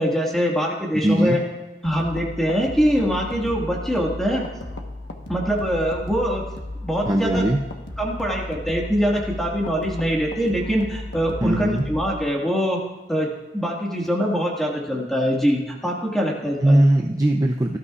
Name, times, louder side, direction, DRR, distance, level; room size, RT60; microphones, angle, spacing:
voice 1, 0.0-1.4 1.8-4.4 5.3-6.4 6.8-7.4 8.0-12.8 13.1-16.8, equal, ahead, -2 dB, 1.8 m, -23 dB
voice 2, 0.9-1.4 7.1-7.6 11.4-11.8 16.6-17.8, right 1 dB, 20° right, 2 dB, 0.5 m, -19 dB
sound 1, 1.8-12.2, left 2 dB, 75° left, 1.3 m, -35 dB
18.5 x 12.5 x 2.5 m, 1.1 s
head